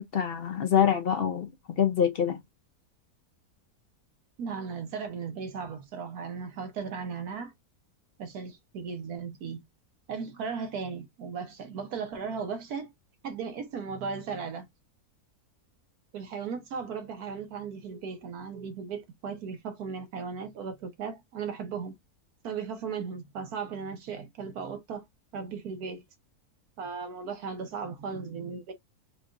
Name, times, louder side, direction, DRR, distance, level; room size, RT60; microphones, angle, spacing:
voice 1, 0.0-1.5 1.8-2.4, left 8 dB, 60° left, 0.6 m, -25 dB
voice 2, 4.4-7.5 8.2-9.6 10.1-12.9 13.2-14.7 16.1-21.9 22.4-25.0 25.3-26.0 26.8-28.7, right 5 dB, 80° right, 1.4 m, -36 dB
4.8 x 2.4 x 2.5 m
omnidirectional pair, 1.6 m